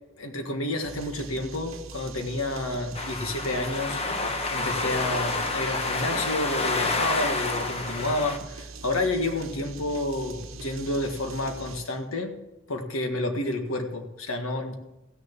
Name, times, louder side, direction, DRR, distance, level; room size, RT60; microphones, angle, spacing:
voice 1, 0.2-12.3 12.7-14.7, left 2 dB, 85° left, 5 dB, 1.7 m, -30 dB
sound 1, 0.8-12.0, right 3 dB, 70° right, 1.0 m, -42 dB
sound 2, 2.9-8.4, left 3 dB, 30° left, 1.1 m, -29 dB
15.5 x 6.8 x 7.4 m, 0.97 s
head